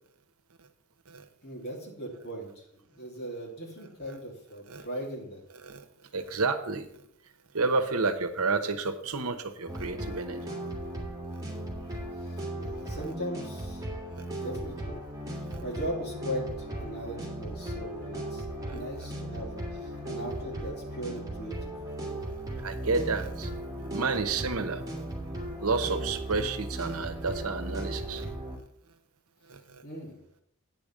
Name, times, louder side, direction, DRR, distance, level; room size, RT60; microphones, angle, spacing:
voice 1, 1.4-5.4 12.2-13.9 14.4-15.0 15.3-18.4 18.7-21.7 29.8-30.2, right 1 dB, 45° left, -1 dB, 2.8 m, -39 dB
voice 2, 6.1-6.9 7.5-10.6 14.1-14.3 15.5-15.6 22.6-23.5 23.9-24.8 25.6-28.3 29.5-29.8, right 4 dB, 75° right, 9 dB, 1.0 m, -30 dB
sound 1, 9.7-28.6, right 1 dB, 15° right, 2.1 m, -37 dB
9.2 x 5.2 x 7.3 m, 0.71 s
head